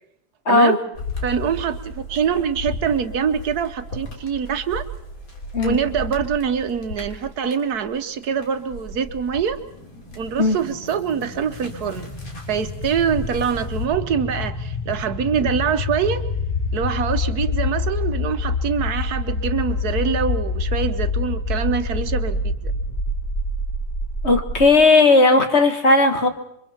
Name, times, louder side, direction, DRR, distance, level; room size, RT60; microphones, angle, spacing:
voice 1, 0.5-0.8 5.5-5.8 10.4-10.6 24.2-26.3, left 3 dB, 40° left, 6 dB, 1.9 m, -15 dB
sound 1, 0.9-9.5 9.9-13.9, left 1 dB, 60° left, 3.5 m, -35 dB
voice 2, 1.2-4.8 5.6-9.6 10.2-12.1 12.5-16.2 16.7-22.7, right 7 dB, 70° right, 10 dB, 1.5 m, -24 dB
sound 2, 8.9-24.7, left 3 dB, 25° left, 3.4 m, -27 dB
27.5 x 24.0 x 4.4 m, 0.76 s
omnidirectional pair, 1.7 m